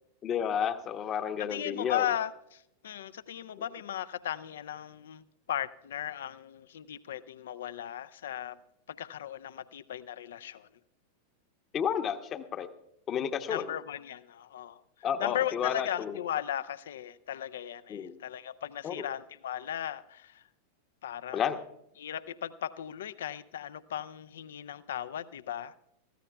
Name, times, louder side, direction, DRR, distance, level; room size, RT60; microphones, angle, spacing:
voice 1, 0.2-2.0 11.7-12.7 13.1-13.7 15.0-16.2 17.9-18.2 18.8-19.0 21.3-21.6, left 8 dB, 30° left, 9 dB, 0.9 m, -31 dB
voice 2, 1.4-8.6 8.9-10.7 13.5-14.8 15.2-20.5 21.0-21.5 22.0-25.8, left 11 dB, 60° left, 16 dB, 0.5 m, -37 dB
22.5 x 15.0 x 2.3 m, 0.77 s
figure-of-eight pair, 90°, 0 cm